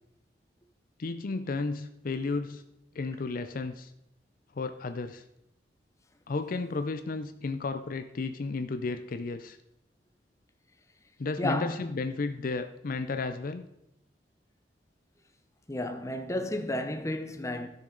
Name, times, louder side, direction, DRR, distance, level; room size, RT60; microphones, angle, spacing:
voice 1, 1.0-2.6 2.9-3.9 4.6-5.2 6.3-9.6 11.2-13.7, left 3 dB, 50° left, 0.5 m, -33 dB
voice 2, 11.4-11.9 15.7-17.7, left 1 dB, 15° left, 0.7 m, -32 dB
12.5 x 6.7 x 3.9 m
head